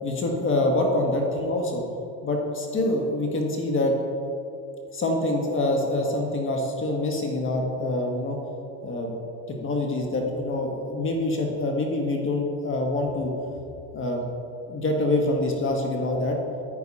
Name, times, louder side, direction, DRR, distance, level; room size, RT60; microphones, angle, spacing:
voice 1, 0.0-1.8 2.2-3.9 4.9-8.4 8.8-9.1 9.6-13.3 13.9-14.2 14.7-16.4, left 2 dB, 35° left, 1 dB, 1.6 m, -25 dB
10.0 x 9.3 x 4.2 m, 2.7 s
supercardioid pair, 105°, 35 cm